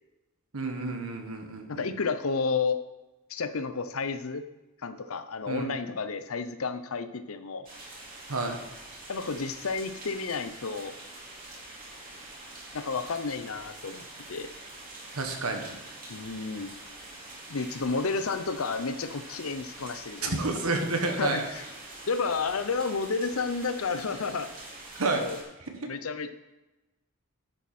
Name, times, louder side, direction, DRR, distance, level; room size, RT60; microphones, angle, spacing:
voice 1, 0.5-1.9 5.5-5.6 8.3-8.6 15.1-15.8 20.2-21.5 24.9-25.2, right 3 dB, 85° right, 4 dB, 1.5 m, -30 dB
voice 2, 1.7-2.8 3.3-4.4 4.8-7.7 9.1-10.9 12.7-14.5 16.1-16.7 17.5-20.4 21.2-21.4 22.1-24.5 25.1-25.4 25.9-26.3, left 4 dB, 80° left, 11 dB, 0.7 m, -31 dB
sound 1, 7.7-25.4, right 2 dB, 40° right, 2.6 m, -45 dB
10.0 x 7.4 x 4.3 m, 1.0 s
head